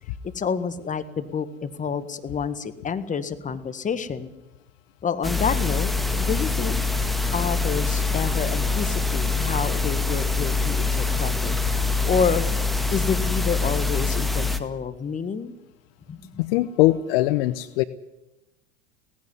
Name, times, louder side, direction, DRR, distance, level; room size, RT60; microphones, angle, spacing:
voice 1, 0.3-4.3 5.0-6.8 7.3-12.5 12.9-15.5 16.1-16.2, left 6 dB, 25° left, 12 dB, 1.7 m, -28 dB
sound 1, 5.2-14.6, left 4 dB, ahead, 1.8 m, -24 dB
voice 2, 16.4-17.8, left 17 dB, 60° left, 15 dB, 1.0 m, -21 dB
18.0 x 16.0 x 9.7 m, 1.0 s
hypercardioid pair, 85°, 32 cm